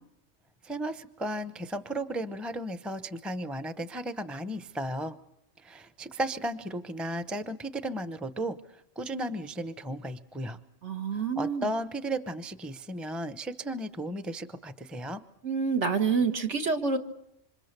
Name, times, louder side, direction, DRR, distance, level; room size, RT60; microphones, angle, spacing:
voice 1, 0.6-5.2 5.6-10.6 11.1-15.2, right 1 dB, ahead, 11 dB, 0.6 m, -35 dB
voice 2, 10.8-11.7 15.4-17.0, right 5 dB, 75° right, 4 dB, 2.0 m, -27 dB
27.0 x 26.0 x 6.7 m, 0.82 s
omnidirectional pair, 1.2 m